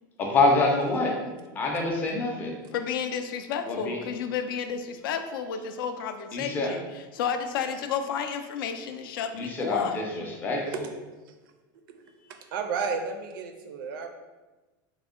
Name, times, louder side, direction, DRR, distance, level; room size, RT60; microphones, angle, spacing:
voice 1, 0.2-1.2 1.6-2.5 3.7-4.0 6.3-6.7 9.3-10.8, left 2 dB, 15° left, 0 dB, 0.4 m, -26 dB
voice 2, 2.7-10.0, left 7 dB, 80° left, 7 dB, 0.4 m, -31 dB
voice 3, 12.5-14.1, right 5 dB, 80° right, 6 dB, 0.5 m, -32 dB
3.6 x 2.1 x 3.6 m, 1.2 s
supercardioid pair, 175°, 11 cm